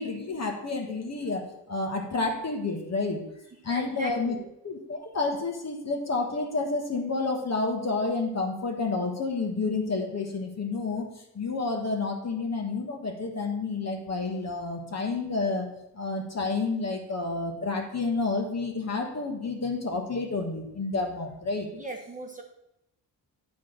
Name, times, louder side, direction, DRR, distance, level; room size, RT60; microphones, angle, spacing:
voice 1, 0.0-3.2 3.6-4.3 4.6-11.1 11.3-15.7 15.9-21.7, left 3 dB, 40° left, 3 dB, 1.4 m, -30 dB
voice 2, 3.7-4.4 21.7-22.4, right 2 dB, 20° right, 1 dB, 1.1 m, -39 dB
9.3 x 4.2 x 6.6 m, 0.83 s
wide cardioid pair, 145°, 40 cm